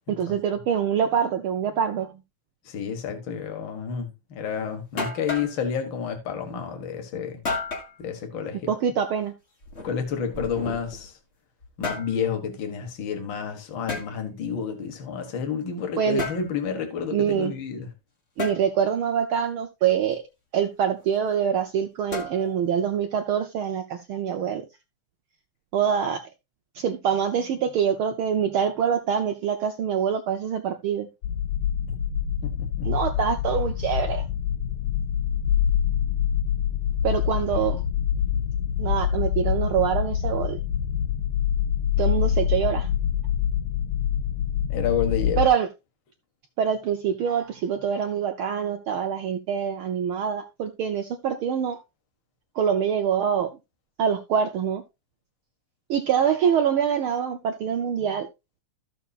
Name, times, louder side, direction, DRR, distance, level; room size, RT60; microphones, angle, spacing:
voice 1, 0.1-2.1 8.7-9.3 16.0-16.2 17.1-17.5 18.4-20.2 20.5-24.6 25.7-26.2 26.7-31.1 32.8-34.2 37.0-37.8 38.8-40.6 42.0-42.9 45.4-45.7 46.6-51.8 52.5-53.5 54.0-54.8 55.9-58.3, right 8 dB, 80° right, 1.2 m, -25 dB
voice 2, 2.6-7.4 8.0-8.7 9.8-11.2 11.8-17.9 32.4-32.9 44.7-45.5, left 7 dB, 45° left, 2.1 m, -30 dB
sound 1, 4.5-4.6 5.0-5.6 7.4-7.9 9.6-11.1 11.6-12.1 13.9-14.1 16.2-16.5 18.4-18.6 22.1-22.7, left 3 dB, 30° left, 1.6 m, -32 dB
sound 2, 31.2-45.5, left 9 dB, 75° left, 1.8 m, -25 dB
14.0 x 7.1 x 2.4 m
omnidirectional pair, 3.3 m